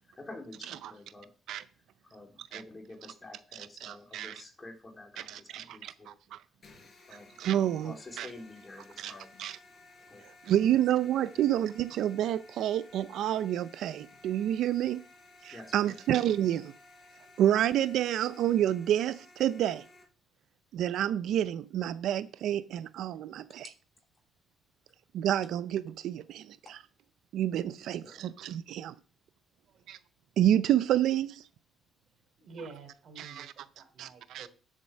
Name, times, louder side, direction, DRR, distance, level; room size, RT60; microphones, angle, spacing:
voice 1, 0.1-1.3 2.0-6.2 7.1-7.4 7.8-9.3 10.0-10.2 11.3-11.5 15.5-16.0 26.7-26.8 27.7-28.3, left 2 dB, 25° left, 3.5 m, -49 dB
voice 2, 3.8-4.3 5.3-6.4 7.4-8.3 9.0-9.1 9.4-9.6 10.5-15.0 15.4-16.7 17.4-19.8 20.7-23.7 25.1-26.8 27.3-28.9 29.9-30.0 30.4-31.5 33.2-33.5 34.0-34.5, right 11 dB, 80° right, 0.4 m, -29 dB
sound 1, 6.6-20.0, left 2 dB, 45° left, 5.1 m, -56 dB
voice 3, 32.4-34.5, right 4 dB, 60° right, 3.3 m, -49 dB
7.8 x 7.5 x 6.3 m
cardioid pair, 90°, 0 cm